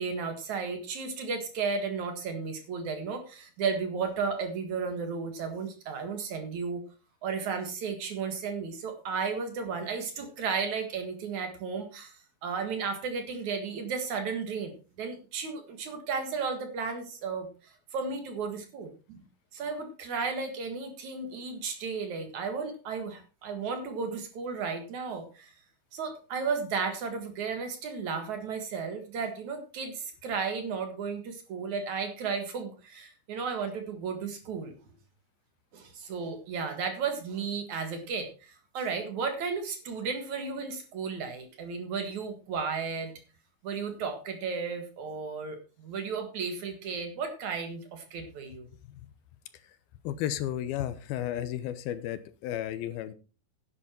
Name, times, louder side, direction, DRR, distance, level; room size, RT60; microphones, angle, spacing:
voice 1, 0.0-6.8 7.2-12.2 12.4-19.2 19.5-25.5 25.9-34.7 35.7-43.2 43.6-48.7, right 5 dB, 60° right, 6 dB, 2.8 m, -34 dB
voice 2, 50.0-53.1, left 11 dB, 80° left, 13 dB, 2.8 m, -33 dB
11.0 x 10.0 x 4.5 m, 0.34 s
omnidirectional pair, 4.4 m